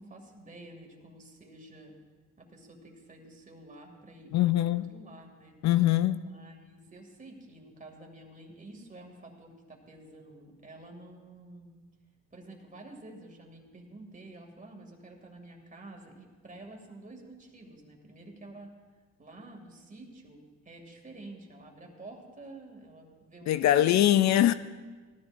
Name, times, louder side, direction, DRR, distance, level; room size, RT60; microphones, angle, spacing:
voice 1, 0.0-1.9 2.4-5.6 6.2-11.7 12.3-18.7 19.2-24.3, right 2 dB, 25° right, 2.5 m, -49 dB
voice 2, 4.3-4.8 5.6-6.2 23.5-24.5, left 13 dB, 65° left, 0.5 m, -22 dB
18.0 x 13.0 x 2.6 m
cardioid pair, 90°, 30 cm